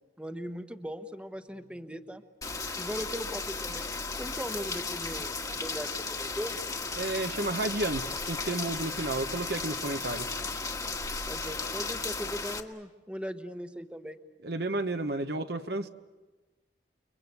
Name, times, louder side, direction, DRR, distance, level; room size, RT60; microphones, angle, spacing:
voice 1, 0.0-2.2 2.8-6.6 11.2-14.2, equal, 5° right, 1.1 m, -39 dB
Rain, 2.4-12.6, left 4 dB, 20° left, 1.6 m, -35 dB
voice 2, 7.0-10.3 14.4-15.9, right 2 dB, 60° right, 1.3 m, -32 dB
30.0 x 22.5 x 8.2 m
head